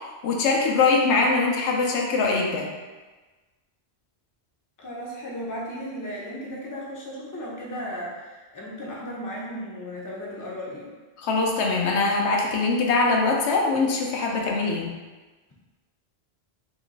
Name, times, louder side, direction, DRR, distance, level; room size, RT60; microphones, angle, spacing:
voice 1, 0.2-2.7 11.2-14.9, left 3 dB, 80° left, 0 dB, 0.9 m, -22 dB
voice 2, 4.8-10.9, equal, 25° left, -4 dB, 0.5 m, -35 dB
2.9 x 2.9 x 3.8 m, 1.3 s
omnidirectional pair, 1.1 m